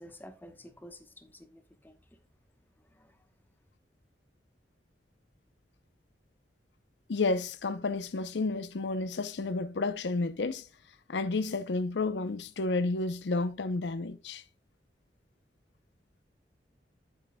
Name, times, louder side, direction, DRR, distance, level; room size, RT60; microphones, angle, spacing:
voice 1, 0.0-2.0 2.8-3.3, equal, 10° left, 1.0 m, -51 dB
voice 2, 7.1-10.7 11.1-14.4, left 3 dB, 80° left, 0.6 m, -31 dB
8.9 x 8.9 x 2.2 m
head